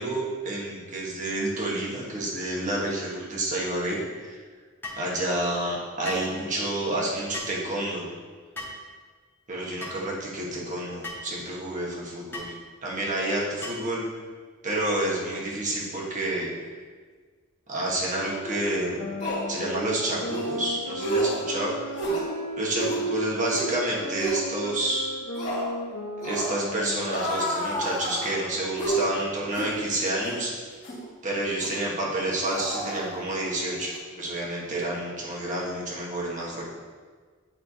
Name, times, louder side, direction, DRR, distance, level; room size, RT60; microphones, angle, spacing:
voice 1, 0.0-4.4 5.0-8.1 9.5-12.5 12.8-14.1 14.6-16.5 17.7-19.0 19.5-22.0 22.6-25.0 26.2-30.5 31.2-36.7, right 1 dB, 40° right, -4 dB, 1.4 m, -29 dB
sound 1, 4.8-5.1 6.0-6.3 7.3-7.6 8.6-8.8 9.8-10.0 11.0-11.3 12.3-12.5 13.6-13.9, left 2 dB, 10° left, 1.0 m, -37 dB
sound 2, 18.4-28.4, equal, 75° left, 0.8 m, -35 dB
sound 3, 18.5-18.6 19.2-19.5 20.3-20.5 21.0-21.4 21.9-22.3 22.7-23.0 23.5-23.7 24.2-24.4 25.3-25.7 26.2-26.6 27.1-28.3 28.8-29.0 29.5-29.8 30.2-30.4 30.8-31.0 31.6-31.8 32.4-33.5 33.8-34.0, right 1 dB, 35° left, 1.5 m, -30 dB
8.6 x 3.3 x 4.1 m, 1.5 s
head